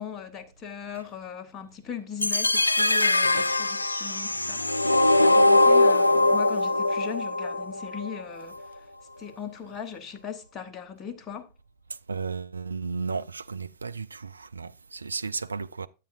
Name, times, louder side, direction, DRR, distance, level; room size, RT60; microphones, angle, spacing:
voice 1, 0.0-4.6 5.2-8.8 9.2-11.5, left 7 dB, 25° left, 1.2 m, -39 dB
sound 1, 2.2-8.2, left 2 dB, 85° left, 0.3 m, -22 dB
voice 2, 12.1-15.9, right 4 dB, 75° right, 0.4 m, -34 dB
10.5 x 8.4 x 2.4 m
figure-of-eight pair, 90°, 0 cm